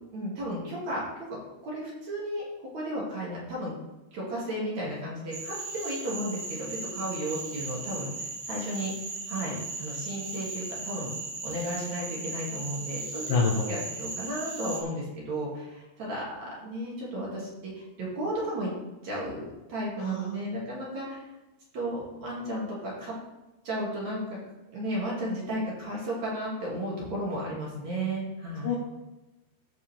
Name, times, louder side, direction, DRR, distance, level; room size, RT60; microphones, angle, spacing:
voice 1, 0.1-1.4 1.6-2.4 2.7-3.7 4.1-8.9 9.3-11.1 11.4-13.2 13.7-18.7 19.0-21.2 21.7-23.1 23.6-24.4 24.7-28.8, right 1 dB, 50° right, -5 dB, 3.1 m, -34 dB
Cricket / Frog, 5.3-14.8, right 3 dB, 70° right, 1.2 m, -37 dB
voice 2, 13.3-13.7 20.0-20.4 28.6-28.8, left 4 dB, 70° left, -2 dB, 2.2 m, -26 dB
15.0 x 5.4 x 3.4 m, 1.0 s
omnidirectional pair, 4.9 m